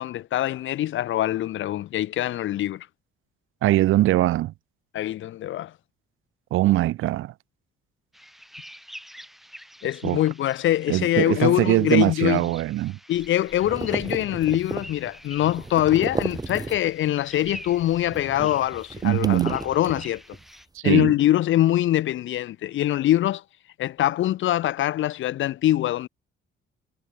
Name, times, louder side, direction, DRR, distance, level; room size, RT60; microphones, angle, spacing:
voice 1, 0.0-2.9 4.9-5.7 9.8-12.4 13.1-20.2 20.8-23.4 23.8-26.1, left 13 dB, 70° left, 1.3 m, -23 dB
voice 2, 3.6-4.5 6.5-7.3 10.0-10.2 10.9-13.0 19.0-19.6 20.7-21.1, right 16 dB, 85° right, 1.4 m, -21 dB
sound 1, 8.1-20.7, equal, ahead, 4.4 m, -47 dB
sound 2, 13.2-17.1 17.4-20.5, right 3 dB, 20° right, 5.1 m, -34 dB
cardioid pair, 120°, 21 cm